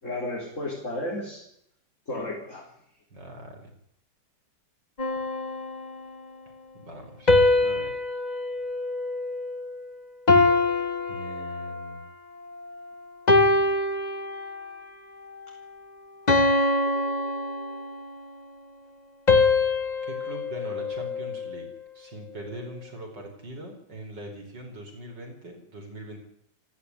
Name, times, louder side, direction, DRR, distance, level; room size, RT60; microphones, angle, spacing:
voice 1, 0.0-1.4 2.1-2.6 10.4-10.5, left 1 dB, 45° left, -3 dB, 5.0 m, -33 dB
voice 2, 3.1-3.7 6.8-7.3 7.6-8.0 11.1-12.0 20.0-21.7 21.9-26.2, right 1 dB, 85° right, 2 dB, 5.6 m, -41 dB
sound 1, 5.0-6.3 7.3-9.8 10.3-12.0 12.6-12.8 13.3-14.8 15.3-15.6 16.3-18.2 19.3-21.7, left 2 dB, 25° left, 1.7 m, -24 dB
18.0 x 16.0 x 9.9 m, 0.74 s
omnidirectional pair, 1.9 m